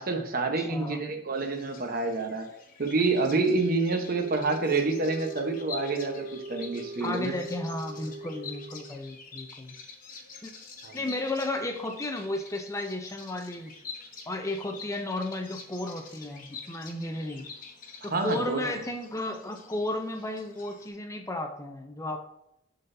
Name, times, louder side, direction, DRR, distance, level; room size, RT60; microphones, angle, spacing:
voice 1, 0.0-2.5 2.8-7.4 10.8-10.9 18.1-18.7, right 3 dB, 50° right, 4 dB, 1.0 m, -28 dB
voice 2, 0.6-1.0 7.0-9.7 10.4-10.5 10.9-13.7 14.3-17.5 18.0-22.2, left 2 dB, 15° left, 4 dB, 0.5 m, -33 dB
Bird vocalization bird call bird song, 1.3-20.9, left 4 dB, 45° left, 1.1 m, -47 dB
sound 1, 4.1-9.0, right 2 dB, 15° right, 2.6 m, -41 dB
11.5 x 4.0 x 2.7 m, 0.81 s
head